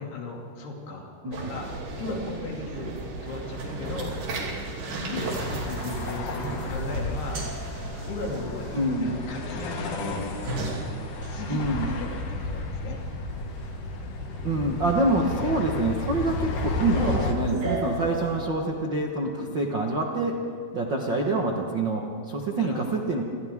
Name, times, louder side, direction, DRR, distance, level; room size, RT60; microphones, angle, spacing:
voice 1, 0.0-1.7 2.0-3.0 3.2-4.2 4.9-7.4 8.1-10.2 11.3-13.0 19.3-19.5 22.6-22.9, left 3 dB, 85° left, -1 dB, 4.7 m, -36 dB
sound 1, 1.3-18.5, right 2 dB, 60° right, 4.5 m, -36 dB
sound 2, 5.0-17.3, left 2 dB, 60° left, 3.2 m, -33 dB
voice 2, 8.7-9.2 11.5-11.9 14.4-20.4 20.7-23.2, right 2 dB, 75° right, 0 dB, 1.0 m, -26 dB
28.5 x 28.0 x 3.7 m, 2.3 s
omnidirectional pair, 4.5 m